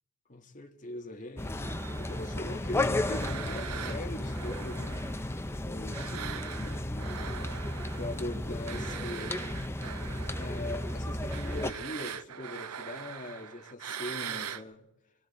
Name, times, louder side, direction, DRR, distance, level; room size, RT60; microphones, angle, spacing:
voice 1, 0.3-5.1 5.6-7.3 7.9-9.4 10.4-14.9, left 1 dB, 35° left, 1.9 m, -41 dB
sound 1, 1.4-11.7, left 1 dB, 10° left, 0.7 m, -34 dB
sound 2, 1.6-5.6 5.9-14.6, right 8 dB, 80° right, 0.7 m, -42 dB
25.5 x 24.0 x 4.3 m
head